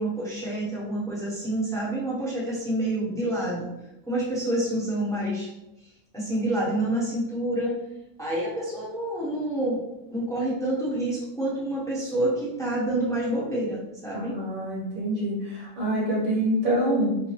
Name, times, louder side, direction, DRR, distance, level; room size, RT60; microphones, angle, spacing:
voice 1, 0.0-3.7 4.1-5.5 6.1-7.7 8.2-9.8 10.1-14.4, right 1 dB, ahead, -7 dB, 0.9 m, -28 dB
voice 2, 14.1-17.2, right 1 dB, 60° right, -6 dB, 2.1 m, -26 dB
5.0 x 2.2 x 3.2 m, 0.92 s
omnidirectional pair, 1.9 m